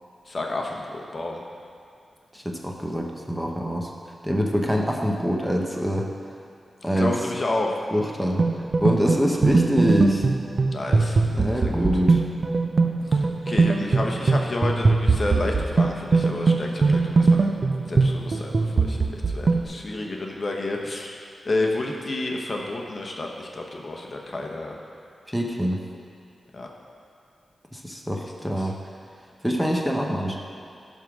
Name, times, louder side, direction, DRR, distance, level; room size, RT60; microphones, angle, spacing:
voice 1, 0.3-1.4 7.0-7.8 10.7-11.2 11.6-11.9 13.1-17.5 17.9-21.2 21.4-24.8 26.5-26.7 28.6-28.7, left 2 dB, 45° left, 1 dB, 0.9 m, -30 dB
voice 2, 2.3-3.9 4.2-6.1 6.8-7.1 7.9-8.5 8.8-10.3 11.3-12.2 25.3-25.8 27.7-28.8 29.4-30.4, equal, ahead, 0 dB, 0.8 m, -25 dB
sound 1, 8.4-19.6, right 3 dB, 55° right, 0.5 m, -21 dB
11.0 x 3.7 x 6.0 m, 2.5 s
cardioid pair, 75°, 0 cm